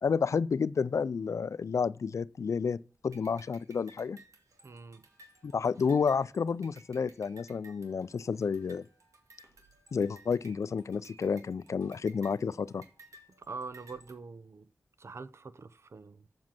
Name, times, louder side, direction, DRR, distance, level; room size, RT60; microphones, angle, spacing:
voice 1, 0.0-4.2 5.4-8.8 9.9-12.8, left 5 dB, 70° left, 0.4 m, -30 dB
sound 1, 3.1-14.1, right 2 dB, 85° right, 2.0 m, -58 dB
voice 2, 4.6-5.0 13.4-14.7 15.0-16.3, right 4 dB, 55° right, 0.7 m, -44 dB
7.5 x 7.4 x 5.9 m
wide cardioid pair, 85°, 5 cm